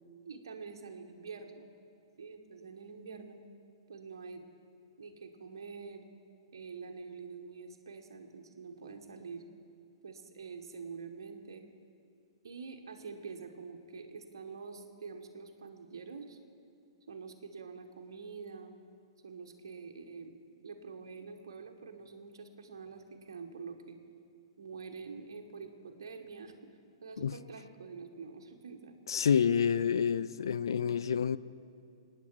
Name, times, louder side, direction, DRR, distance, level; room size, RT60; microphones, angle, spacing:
voice 1, 0.2-1.7 2.2-3.4 3.9-4.4 5.0-6.0 6.5-9.4 10.0-11.6 12.4-16.4 17.1-18.7 19.2-24.0 24.6-26.5 27.0-28.9, right 5 dB, 60° right, 4 dB, 1.3 m, -46 dB
voice 2, 29.1-31.4, left 7 dB, 60° left, 16 dB, 0.4 m, -28 dB
25.0 x 9.5 x 4.6 m, 2.5 s
figure-of-eight pair, 110°, 3 cm